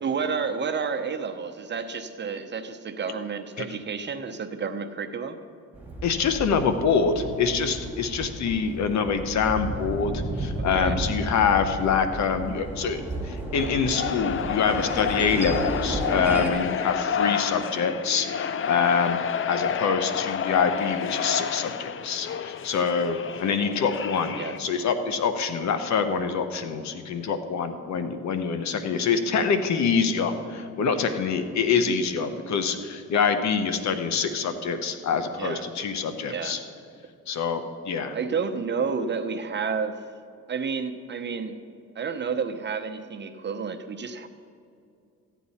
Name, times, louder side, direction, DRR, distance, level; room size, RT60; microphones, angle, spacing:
voice 1, 0.0-5.4 10.6-11.0 16.5-16.7 24.4-24.6 35.4-35.6 36.3-36.6 38.1-40.0 40.5-41.6 41.9-44.3, right 5 dB, 35° right, 6 dB, 0.9 m, -30 dB
sound 1, 5.7-16.5, right 1 dB, 5° right, 1.9 m, -33 dB
voice 2, 6.0-19.2 19.5-36.6 37.3-38.1, left 6 dB, 65° left, 8 dB, 1.0 m, -25 dB
sound 2, 13.5-24.6, left 7 dB, 45° left, 0.5 m, -30 dB
14.5 x 9.3 x 4.2 m, 2.4 s
cardioid pair, 90°, 30 cm